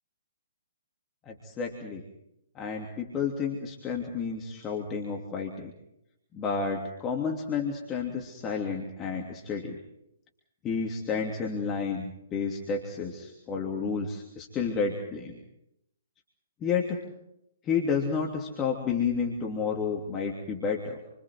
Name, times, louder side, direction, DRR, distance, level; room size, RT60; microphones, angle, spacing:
voice 1, 1.3-2.0 2.5-5.7 6.3-9.8 10.6-15.4 16.6-17.0 17.6-21.0, left 5 dB, 20° left, 0 dB, 3.0 m, -31 dB
28.5 x 26.0 x 4.7 m, 0.81 s
figure-of-eight pair, 125°, 0 cm